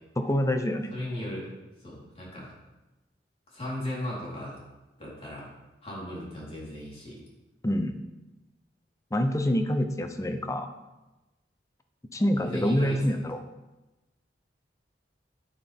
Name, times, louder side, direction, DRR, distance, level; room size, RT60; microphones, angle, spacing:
voice 1, 0.2-0.9 7.6-8.0 9.1-10.7 12.1-13.4, equal, 20° left, 7 dB, 0.7 m, -26 dB
voice 2, 0.9-1.5 1.8-2.5 3.5-4.6 5.0-5.5 5.8-7.2 12.3-13.0, left 1 dB, 35° left, -6 dB, 3.8 m, -36 dB
9.9 x 9.5 x 3.6 m, 1.1 s
head